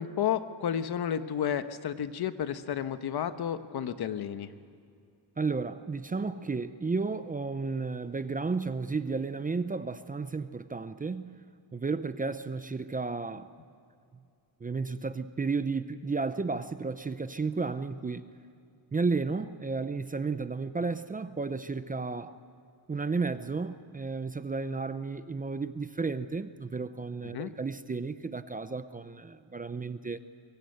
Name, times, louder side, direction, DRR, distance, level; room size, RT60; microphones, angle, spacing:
voice 1, 0.0-4.5 27.3-27.5, left 9 dB, 60° left, 11 dB, 1.2 m, -31 dB
voice 2, 5.4-11.4 11.7-13.5 14.6-18.3 18.9-22.4 22.9-30.2, right 4 dB, 20° right, 11 dB, 0.6 m, -33 dB
24.5 x 23.0 x 8.0 m, 2.4 s
cardioid pair, 150°, 44 cm